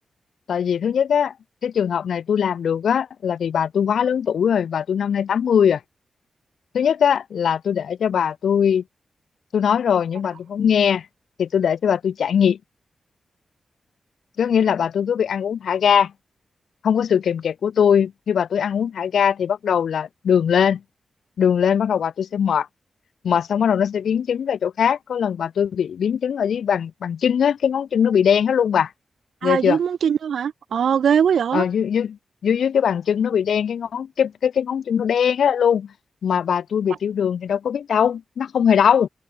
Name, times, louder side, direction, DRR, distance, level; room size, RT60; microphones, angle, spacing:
voice 1, 0.5-1.3 1.6-5.8 6.7-8.8 9.5-11.1 11.4-12.6 14.4-16.1 16.8-20.8 21.4-22.7 23.2-28.9 29.4-29.8 31.5-32.2 32.4-35.9 36.2-39.1, left 8 dB, 85° left, 3.8 m, -20 dB
voice 2, 29.4-31.7, right 8 dB, 85° right, 1.5 m, -20 dB
cardioid pair, 50°, 0 cm